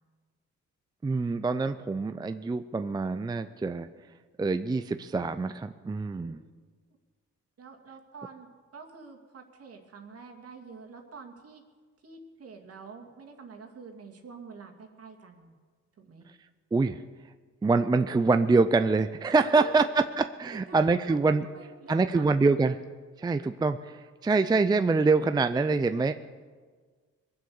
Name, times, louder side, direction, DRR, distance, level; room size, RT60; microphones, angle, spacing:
voice 1, 1.0-3.9 4.4-6.4 16.7-17.0 17.6-19.8 20.2-21.5 21.9-22.8 23.2-26.1, right 3 dB, 15° right, 9 dB, 0.4 m, -25 dB
voice 2, 6.1-6.4 7.6-11.6 12.0-15.6 16.0-16.2 19.4-19.8 20.7-22.4, right 5 dB, 50° right, 4 dB, 2.3 m, -47 dB
22.0 x 7.6 x 7.0 m, 1.5 s
cardioid pair, 90°, 30 cm